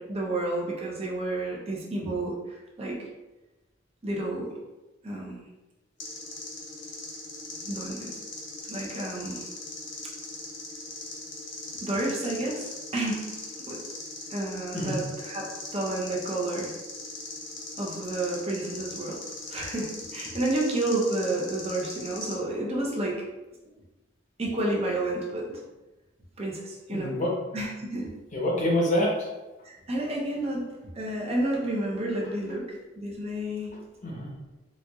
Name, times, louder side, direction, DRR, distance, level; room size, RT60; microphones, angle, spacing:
voice 1, 0.0-3.0 4.0-4.5 5.0-5.4 7.6-8.2 8.7-9.5 11.8-13.4 13.7-13.8 14.3-15.4 15.7-16.7 17.8-19.2 19.5-23.2 24.4-25.6 26.4-27.1 27.5-28.1 29.6-32.6 33.0-33.7, right 1 dB, 35° right, -3 dB, 0.7 m, -30 dB
sound 1, 6.0-22.4, left 3 dB, 65° left, 1.0 m, -40 dB
voice 2, 14.7-15.0 26.9-27.3 28.3-29.3 34.0-34.3, left 1 dB, 40° left, -3 dB, 0.9 m, -26 dB
4.3 x 2.5 x 2.4 m, 1.1 s
head